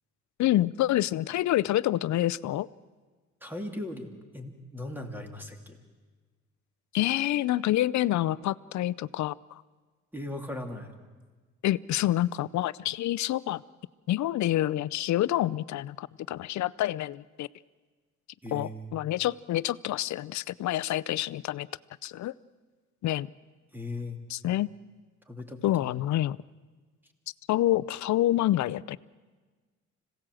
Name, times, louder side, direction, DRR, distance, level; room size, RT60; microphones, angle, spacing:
voice 1, 0.4-2.7 6.9-9.3 11.6-13.6 14.1-17.5 18.5-21.7 22.0-22.3 23.0-23.3 24.3-24.7 25.6-26.4 27.5-29.0, left 14 dB, 70° left, 20 dB, 0.6 m, -27 dB
voice 2, 3.4-4.1 4.3-5.8 10.1-10.9 18.4-18.9 23.7-24.2 25.3-25.9, left 1 dB, 5° right, 4 dB, 2.8 m, -38 dB
26.0 x 17.5 x 7.6 m, 1.4 s
cardioid pair, 90°, 30 cm